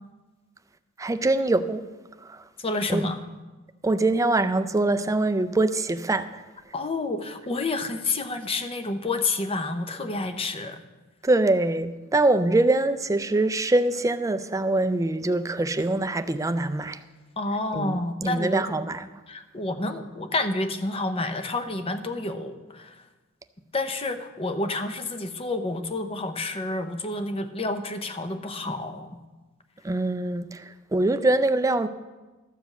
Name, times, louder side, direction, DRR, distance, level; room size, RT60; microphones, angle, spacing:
voice 1, 1.0-1.9 2.2-2.5 2.9-3.1 3.8-6.4 11.2-17.0 17.7-19.1 29.8-31.9, right 2 dB, 15° right, 0.4 m, -24 dB
voice 2, 2.6-3.2 6.7-10.8 17.4-18.6 19.3-23.0 23.7-29.1, left 2 dB, 30° left, 0.7 m, -29 dB
13.0 x 5.1 x 7.7 m
head